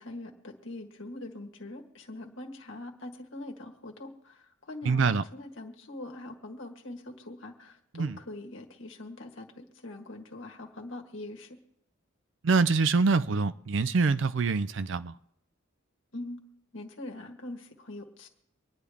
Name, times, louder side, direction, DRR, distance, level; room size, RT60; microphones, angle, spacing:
voice 1, 0.0-11.6 16.1-16.4 16.7-18.3, left 2 dB, 65° left, 1.6 m, -43 dB
voice 2, 4.9-5.2 7.9-8.2 12.4-15.1, right 4 dB, 60° right, 0.5 m, -25 dB
25.0 x 10.0 x 3.5 m
head